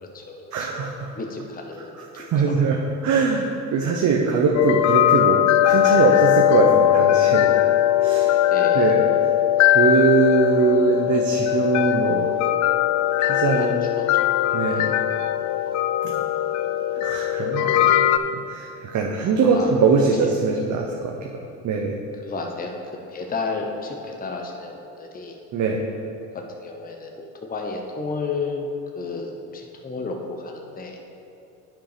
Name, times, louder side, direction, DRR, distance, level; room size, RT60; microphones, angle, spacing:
voice 1, 0.0-0.7 1.1-2.6 8.5-8.9 13.6-13.7 13.9-14.2 14.8-14.9 19.2-19.7 20.1-20.3 22.2-22.7 23.1-25.4 26.1-31.0, left 4 dB, 20° left, 2 dB, 1.0 m, -32 dB
voice 2, 0.5-1.1 2.1-7.5 8.0-8.4 8.7-9.0 9.6-12.3 13.2-13.8 14.5-14.9 16.0-16.2 17.0-17.9 18.5-21.3 21.6-21.9 25.5-25.8, right 4 dB, 45° right, 0 dB, 0.9 m, -22 dB
sound 1, 4.5-18.2, left 12 dB, 45° left, 0.4 m, -20 dB
8.8 x 5.3 x 5.0 m, 2.7 s
supercardioid pair, 80°, 40 cm